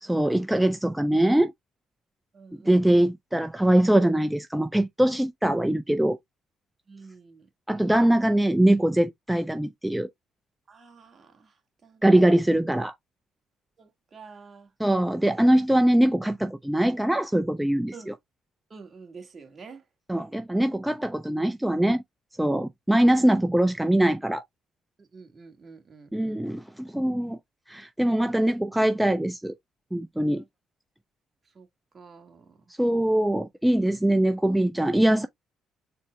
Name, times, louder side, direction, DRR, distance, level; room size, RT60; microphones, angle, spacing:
voice 1, 0.0-1.5 2.7-6.2 7.7-10.1 12.0-12.9 14.8-18.1 20.1-22.0 22.4-24.4 26.1-27.4 27.7-29.5 29.9-30.4 32.8-35.3, right 1 dB, 5° right, 0.4 m, -22 dB
voice 2, 2.3-2.9 6.9-7.5 10.7-12.4 13.8-14.7 17.9-18.1 18.7-19.8 25.0-26.4 30.3-30.4 31.5-31.7 31.9-32.6, right 4 dB, 35° right, 1.3 m, -48 dB
4.3 x 2.0 x 4.3 m
cardioid pair, 100°, 0 cm